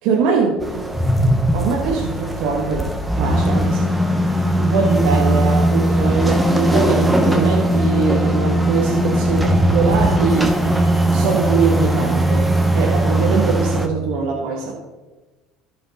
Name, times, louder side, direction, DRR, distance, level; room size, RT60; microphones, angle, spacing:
voice 1, 0.0-0.9 1.5-2.9 3.2-3.9 4.6-10.6 11.1-14.8, right 5 dB, 75° right, -1 dB, 1.4 m, -22 dB
sound 1, 0.6-13.9, right 1 dB, 10° right, 1.3 m, -18 dB
14.0 x 5.0 x 4.2 m, 1.2 s
supercardioid pair, 90°, 0 cm